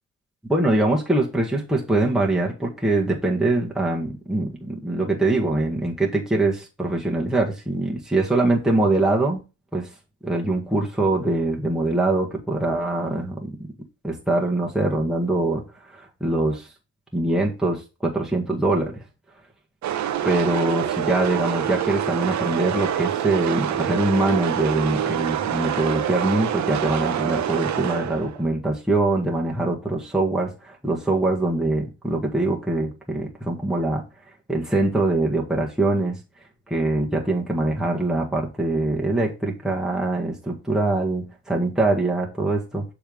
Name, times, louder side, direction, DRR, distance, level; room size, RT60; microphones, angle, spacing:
voice 1, 0.5-9.4 9.7-9.9 10.2-13.7 14.0-15.6 15.9-16.7 17.1-19.0 20.2-34.0 34.5-36.2 36.7-42.8, right 2 dB, ahead, -2 dB, 1.7 m, -23 dB
sound 1, 19.8-28.5, right 10 dB, 65° right, 0.9 m, -26 dB
7.1 x 3.5 x 5.4 m, 0.29 s
cardioid pair, 90°, 30 cm